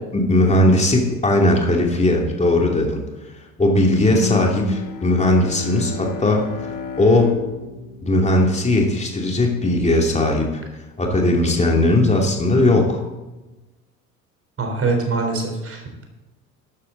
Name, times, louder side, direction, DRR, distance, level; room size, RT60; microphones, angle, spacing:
voice 1, 0.1-3.0 3.6-6.5 7.0-7.3 8.0-10.6 11.0-13.0, left 1 dB, 15° left, 0 dB, 2.8 m, -18 dB
Bowed string instrument, 4.1-9.1, left 4 dB, 65° left, 2.3 m, -32 dB
voice 2, 14.6-16.0, right 3 dB, 30° right, 3 dB, 4.1 m, -23 dB
13.0 x 13.0 x 4.0 m, 1.1 s
figure-of-eight pair, 65°, 45 cm